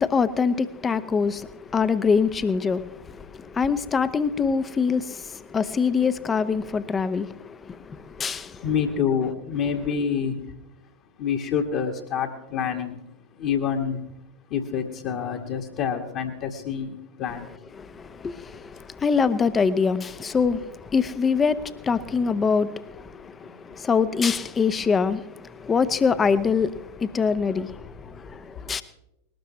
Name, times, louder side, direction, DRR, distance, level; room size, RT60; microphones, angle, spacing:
voice 1, 0.0-8.6 17.8-28.8, left 5 dB, 20° left, 0.8 m, -24 dB
voice 2, 8.6-10.3 11.2-13.0 13.4-14.0 14.5-16.9 17.2-17.4, left 7 dB, 40° left, 1.6 m, -27 dB
21.0 x 19.0 x 3.1 m
figure-of-eight pair, 90°, 0 cm